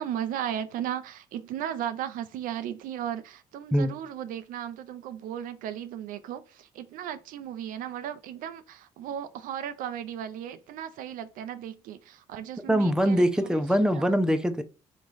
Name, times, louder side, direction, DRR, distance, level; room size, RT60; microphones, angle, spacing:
voice 1, 0.0-13.2, right 10 dB, 75° right, 0.4 m, -35 dB
voice 2, 12.7-14.6, equal, 5° right, 0.7 m, -23 dB
3.5 x 3.1 x 3.9 m
hypercardioid pair, 50°, 15 cm